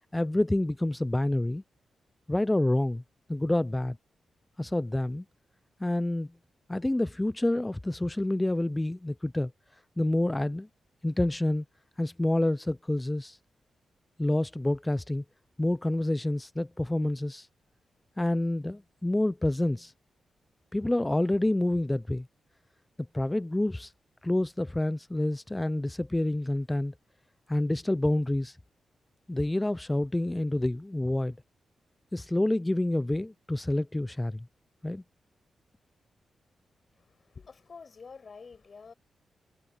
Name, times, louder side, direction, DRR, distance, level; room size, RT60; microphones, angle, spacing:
voice 1, 0.1-1.6 2.3-3.0 3.3-4.0 4.6-5.2 5.8-6.3 6.7-9.5 10.0-10.7 11.0-11.6 12.0-13.4 14.2-15.2 15.6-17.5 18.2-19.9 20.7-22.3 23.1-23.9 24.2-26.9 27.5-28.6 29.3-31.4 32.1-34.5 34.8-35.0, left 1 dB, 10° left, 0.4 m, -28 dB
voice 2, 37.0-38.9, left 5 dB, 45° left, 6.7 m, -48 dB
cardioid pair, 105°, 0 cm